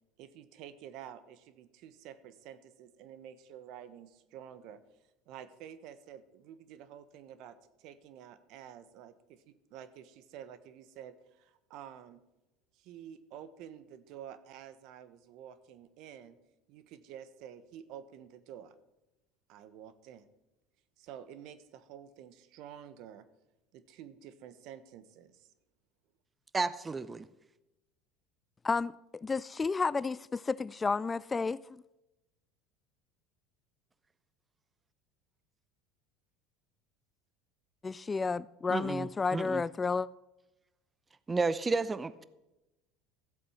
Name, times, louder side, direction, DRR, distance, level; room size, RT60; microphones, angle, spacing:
voice 1, 0.2-4.8 5.3-12.2 12.7-16.4 16.7-18.8 19.5-20.2 21.0-23.3 23.7-25.5, right 9 dB, 65° right, 1.2 m, -50 dB
voice 2, 26.5-27.2 38.7-39.6 41.3-42.2, right 4 dB, 20° right, 0.6 m, -32 dB
voice 3, 28.6-31.6 37.8-40.1, left 4 dB, 20° left, 0.3 m, -31 dB
14.5 x 8.0 x 5.8 m
supercardioid pair, 100°, 0 cm